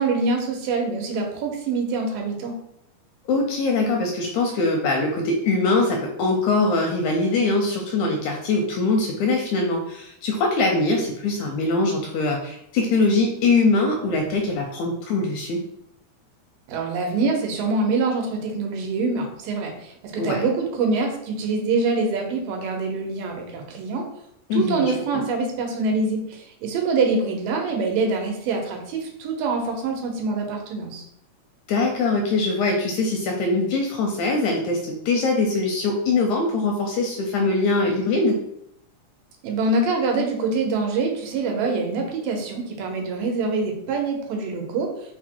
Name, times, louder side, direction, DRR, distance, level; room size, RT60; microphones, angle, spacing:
voice 1, 0.0-2.5 16.7-24.1 24.5-31.0 39.4-44.9, right 3 dB, 90° right, 2 dB, 2.5 m, -25 dB
voice 2, 3.3-15.6 20.2-20.5 24.5-25.2 31.7-38.4, left 3 dB, 80° left, 2 dB, 1.7 m, -22 dB
5.4 x 2.1 x 4.4 m, 0.76 s
omnidirectional pair, 3.8 m